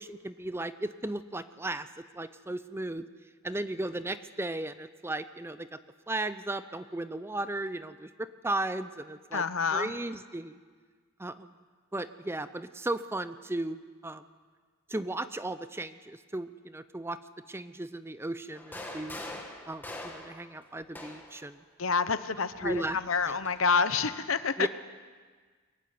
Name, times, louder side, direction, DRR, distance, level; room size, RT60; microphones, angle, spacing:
voice 1, 0.0-3.1 3.4-5.8 6.1-9.4 9.7-10.6 11.2-11.5 11.9-14.2 14.9-17.2 17.5-19.2 19.7-21.6 22.6-23.4 24.6-24.7, right 2 dB, 10° right, 12 dB, 0.6 m, -35 dB
voice 2, 9.3-9.9 21.8-22.7 23.1-24.7, left 5 dB, 65° left, 12 dB, 0.9 m, -27 dB
sound 1, 18.5-21.4 22.6-23.6, left 1 dB, 10° left, 2.1 m, -43 dB
22.5 x 15.5 x 9.5 m, 1.5 s
head